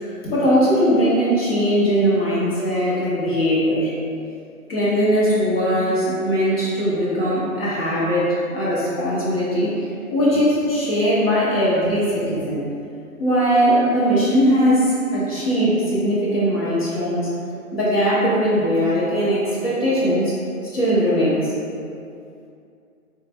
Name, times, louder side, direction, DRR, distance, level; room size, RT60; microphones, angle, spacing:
voice 1, 0.2-3.9 4.7-9.7 10.1-12.6 13.2-17.3 17.7-20.3 20.7-21.5, equal, 40° left, -9 dB, 0.9 m, -20 dB
3.2 x 2.4 x 3.3 m, 2.5 s
hypercardioid pair, 150°, 44 cm